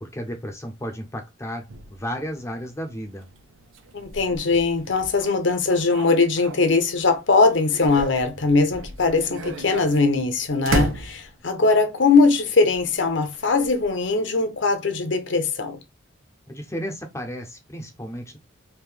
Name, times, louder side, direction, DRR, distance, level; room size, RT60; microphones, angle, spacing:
voice 1, 0.0-3.3 16.5-18.4, equal, 15° left, 0.5 m, -33 dB
sound 1, 1.7-7.0 7.4-11.6 12.6-14.1, right 2 dB, 80° right, 0.6 m, -35 dB
voice 2, 3.9-15.8, left 3 dB, 65° left, 0.8 m, -21 dB
3.5 x 2.7 x 3.1 m
head